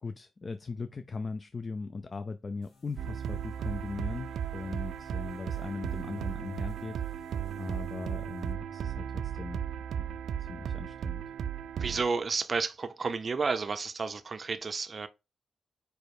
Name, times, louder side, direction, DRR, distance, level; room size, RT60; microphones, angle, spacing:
voice 1, 0.0-7.0 7.6-9.6 9.9-11.2, left 4 dB, 30° left, 0.4 m, -39 dB
sound 1, 2.6-8.5, left 4 dB, 75° left, 3.5 m, -60 dB
sound 2, 3.0-12.0, right 9 dB, 85° right, 0.4 m, -35 dB
voice 2, 11.8-15.1, right 4 dB, 35° right, 0.6 m, -31 dB
5.0 x 4.9 x 4.7 m
wide cardioid pair, 165°, 0 cm